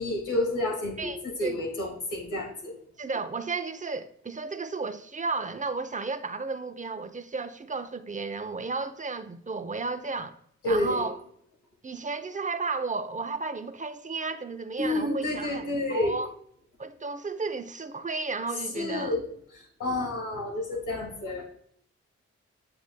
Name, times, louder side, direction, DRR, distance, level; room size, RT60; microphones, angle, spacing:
voice 1, 0.0-2.8 10.6-11.1 14.8-16.2 18.7-19.2 19.5-21.5, left 1 dB, 85° left, 1.7 m, -30 dB
voice 2, 1.0-1.6 3.0-10.4 10.6-11.2 11.8-16.3 16.8-19.1, right 4 dB, 25° right, 0.7 m, -33 dB
7.7 x 6.9 x 2.2 m
supercardioid pair, 45°, 30 cm